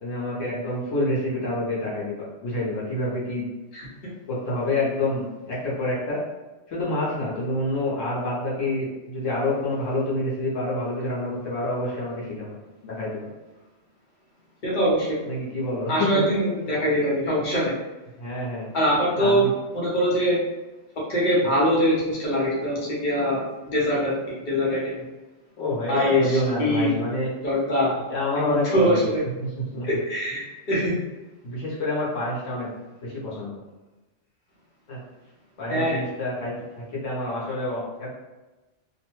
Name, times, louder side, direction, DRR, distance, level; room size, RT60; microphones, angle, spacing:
voice 1, 0.0-3.4 4.3-6.2 6.7-12.6 12.8-13.3 15.2-16.2 18.2-18.7 19.1-19.5 21.4-21.5 25.6-27.3 28.1-29.1 29.4-29.5 29.7-29.9 31.4-32.7 33.0-33.6 34.9-35.0 35.6-38.1, left 1 dB, 80° left, -6 dB, 1.3 m, -27 dB
voice 2, 3.7-4.1 14.6-15.2 15.9-17.7 18.7-19.4 19.7-20.4 21.1-25.0 25.9-26.9 27.4-27.9 28.5-29.2 29.9-31.0 35.7-36.0, equal, 45° left, -6 dB, 1.0 m, -23 dB
2.9 x 2.2 x 3.0 m, 1.1 s
omnidirectional pair, 1.3 m